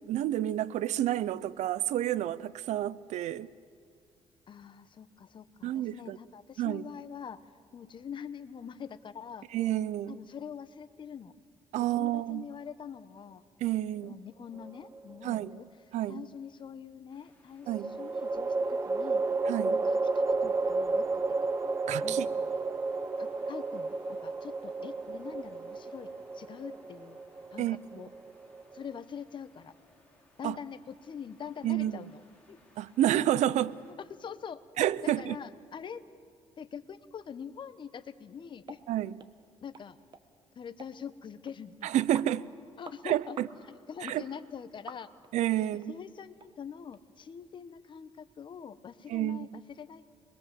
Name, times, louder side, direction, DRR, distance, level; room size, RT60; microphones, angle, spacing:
voice 1, 0.1-3.5 5.6-6.2 6.6-6.8 9.5-10.2 11.7-12.5 13.6-14.2 15.2-15.6 15.9-16.2 17.7-18.0 19.5-19.8 21.9-22.3 27.6-27.8 30.4-30.6 31.6-32.0 32.8-33.8 34.8-35.4 38.9-39.2 41.8-42.5 43.0-43.5 44.0-44.2 45.3-46.0 49.1-49.6, right 13 dB, 80° right, 0.6 m, -29 dB
voice 2, 4.5-7.4 7.7-9.5 10.1-11.3 11.9-13.4 14.0-15.6 16.1-17.7 18.0-19.2 19.8-21.5 22.0-22.2 23.2-27.2 27.5-28.1 28.7-29.7 30.4-32.2 32.5-32.6 34.1-34.6 35.0-36.0 36.6-38.8 39.6-40.0 40.5-41.9 42.8-43.4 43.7-45.1 45.6-50.1, left 7 dB, 45° left, 1.0 m, -44 dB
sound 1, 14.6-15.4 17.7-29.0, right 3 dB, 25° right, 0.7 m, -32 dB
sound 2, 17.1-33.9, left 1 dB, 10° left, 5.4 m, -63 dB
sound 3, 38.7-38.8 39.2-39.3 39.7-39.9 40.1-40.2 40.8-40.9 41.5-41.6 42.1-42.3 42.8-43.0 43.4-43.5 44.1-44.2 44.9-45.3 45.8-45.9 46.4-46.5 46.9-47.0, right 5 dB, 40° right, 1.4 m, -47 dB
25.5 x 22.0 x 7.7 m
cardioid pair, 115°, 12 cm